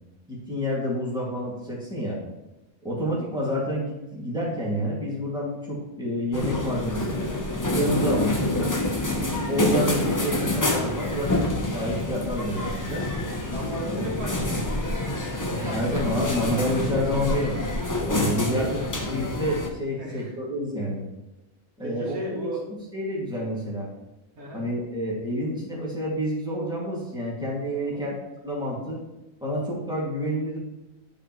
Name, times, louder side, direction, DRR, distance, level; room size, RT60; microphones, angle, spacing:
voice 1, 0.3-2.2 2.8-7.3 7.7-8.7 9.4-13.1 15.7-17.6 18.1-18.8 19.1-21.0 21.8-22.1 22.9-23.9 24.5-28.1 28.4-29.0 29.4-30.6, equal, 5° right, -6 dB, 2.2 m, -28 dB
sound 1, 6.3-19.7, left 1 dB, 20° left, 0.5 m, -27 dB
voice 2, 13.5-14.8 15.4-16.0 18.5-18.7 20.0-20.3 21.8-22.6 24.4-24.7 27.8-28.1, right 1 dB, 80° right, -5 dB, 2.7 m, -35 dB
11.0 x 5.0 x 3.1 m, 0.99 s
omnidirectional pair, 1.5 m